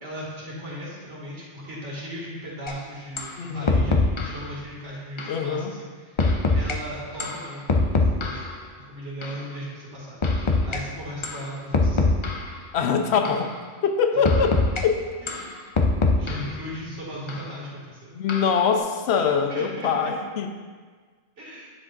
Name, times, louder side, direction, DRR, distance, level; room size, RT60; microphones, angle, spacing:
voice 1, 0.0-8.4 8.8-12.0 15.2-15.5 16.2-18.1 19.2-20.1 21.4-21.7, equal, 85° right, -6 dB, 2.4 m, -37 dB
sound 1, 2.7-2.8 3.2-3.4 3.7-4.4 5.2-5.4 6.2-6.7 7.2-8.6 9.2-9.4 10.2-10.8 11.2-11.4 11.7-12.6 13.2-13.5 14.2-14.8 15.3-16.6 17.3-17.4 18.3-18.7, left 3 dB, 35° left, 0.5 m, -23 dB
voice 2, 3.4-3.8 5.3-5.7 12.7-13.5 13.8-14.6 14.8-15.0 18.1-20.5, left 6 dB, 70° left, 5 dB, 0.9 m, -23 dB
9.6 x 7.6 x 2.5 m, 1.5 s
omnidirectional pair, 1.2 m